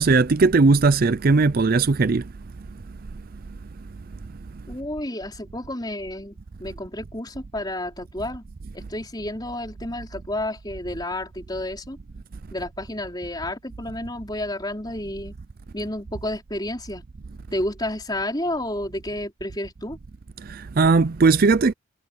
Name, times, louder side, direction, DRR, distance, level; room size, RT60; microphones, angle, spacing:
voice 1, 0.0-2.3 20.4-21.7, right 4 dB, 45° right, 0.5 m, -18 dB
voice 2, 4.7-8.5 8.7-12.0 12.5-15.4 15.7-17.0 17.5-20.0, left 1 dB, 20° left, 4.9 m, -31 dB
head